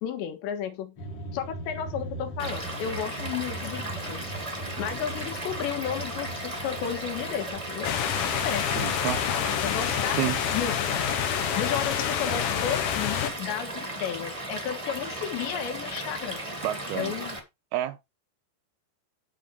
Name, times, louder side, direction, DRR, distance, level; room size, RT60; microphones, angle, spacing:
voice 1, 0.0-1.0 1.3-4.3 4.8-7.9 8.4-10.3 10.5-11.1 11.5-16.4 16.9-17.4, left 9 dB, 90° left, 3.7 m, -33 dB
sound 1, 1.0-9.1, right 1 dB, 45° left, 2.3 m, -40 dB
Stream / Liquid, 2.4-17.4, right 1 dB, 25° right, 0.7 m, -36 dB
sound 2, 7.8-13.3, left 9 dB, 65° left, 2.1 m, -28 dB
voice 2, 8.8-9.2 10.2-10.4 16.6-17.2 17.7-18.0, right 14 dB, 80° right, 2.3 m, -29 dB
10.5 x 3.6 x 7.2 m
omnidirectional pair, 4.9 m